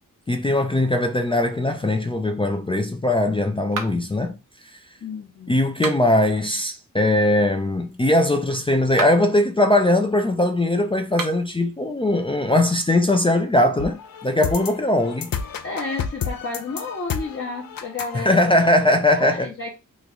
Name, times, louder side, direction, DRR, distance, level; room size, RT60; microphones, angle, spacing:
voice 1, 0.3-4.3 5.5-15.3 18.1-19.5, left 1 dB, 15° left, 0.4 m, -20 dB
sound 1, 3.7-4.2 5.7-6.3 8.8-9.3 11.1-11.5, right 4 dB, 70° right, 0.8 m, -32 dB
voice 2, 5.0-5.6 15.6-18.4 19.1-19.7, left 3 dB, 40° left, 0.8 m, -31 dB
sound 2, 13.8-18.8, left 7 dB, 80° left, 0.5 m, -31 dB
3.1 x 2.3 x 3.8 m
wide cardioid pair, 105°, 34 cm